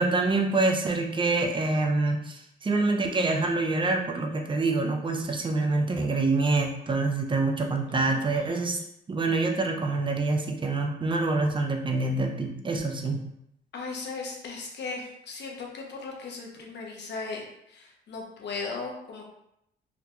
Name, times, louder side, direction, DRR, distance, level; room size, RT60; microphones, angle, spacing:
voice 1, 0.0-8.8 9.1-13.2, right 3 dB, 25° right, 3 dB, 0.5 m, -26 dB
voice 2, 7.9-8.8 13.7-19.3, left 4 dB, 60° left, -1 dB, 0.9 m, -38 dB
3.7 x 2.7 x 2.4 m, 0.78 s
cardioid pair, 90°, 20 cm